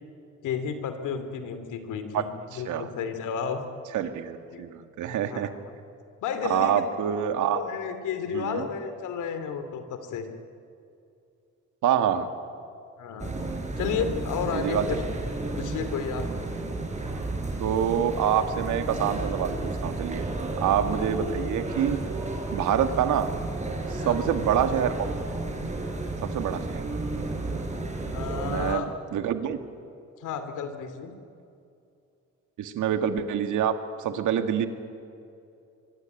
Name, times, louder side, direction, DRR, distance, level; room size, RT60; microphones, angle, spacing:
voice 1, 0.4-3.6 4.5-4.6 5.3-5.6 6.2-6.8 7.5-10.3 13.0-13.3 13.8-15.0 15.5-16.3 24.0-24.2 28.1-28.9 30.2-31.1, left 7 dB, 85° left, 9 dB, 2.8 m, -32 dB
voice 2, 2.5-2.9 3.9-5.5 6.4-7.6 8.3-8.7 11.8-12.3 14.5-14.9 17.6-20.3 20.6-22.0 22.5-23.3 23.9-24.9 26.2-26.8 28.4-28.8 29.1-29.6 32.6-34.7, right 9 dB, 80° right, 8 dB, 2.1 m, -26 dB
sound 1, 13.2-28.7, right 2 dB, 25° right, 5.4 m, -32 dB
25.0 x 23.0 x 9.3 m, 2.6 s
cardioid pair, 90°, 30 cm